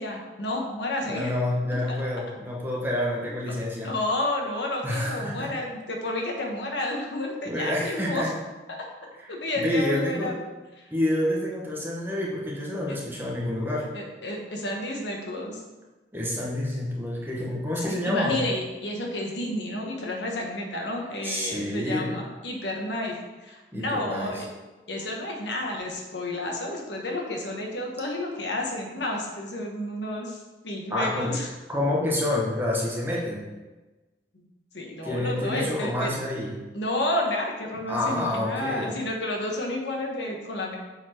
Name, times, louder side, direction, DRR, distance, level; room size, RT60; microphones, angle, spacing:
voice 1, 0.0-1.4 1.9-2.0 3.4-3.5 3.8-8.3 8.8-8.9 9.3-10.3 10.8-10.9 12.9-13.0 13.9-15.6 17.8-24.5 24.9-30.4 30.6-31.5 34.3-34.4 34.7-36.1 36.7-40.8, left 1 dB, 85° left, 0 dB, 1.3 m, -31 dB
voice 2, 1.1-3.9 4.8-5.5 7.4-8.3 9.2-9.3 9.6-10.3 10.9-13.9 16.1-18.4 21.2-22.2 23.7-24.4 30.9-31.4 31.7-33.5 35.0-36.6 37.9-39.0, left 1 dB, 10° right, -3 dB, 1.1 m, -28 dB
7.1 x 4.4 x 4.4 m, 1.2 s
head